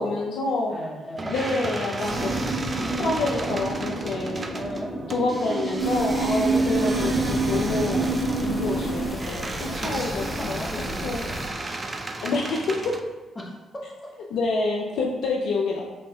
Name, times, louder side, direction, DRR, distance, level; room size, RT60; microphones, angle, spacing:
voice 1, 0.0-0.8 1.3-2.3 3.0-4.5 5.1-8.1 8.4-10.6 11.0-11.2 11.6-11.8 12.2-13.0 14.3-15.8, left 3 dB, 70° left, -1 dB, 0.4 m, -27 dB
voice 2, 0.7-1.3 2.8-3.5 4.5-4.9 6.4-8.9 9.7-11.7 13.4-14.1, left 1 dB, 30° left, -1 dB, 0.9 m, -38 dB
sound 1, 1.2-13.0, right 2 dB, 35° right, 0.4 m, -35 dB
sound 2, 1.9-9.1, right 2 dB, 50° right, 0.8 m, -27 dB
sound 3, 5.8-11.5, right 1 dB, 5° right, 1.2 m, -35 dB
4.2 x 3.1 x 2.2 m, 1.1 s
hypercardioid pair, 45°, 0 cm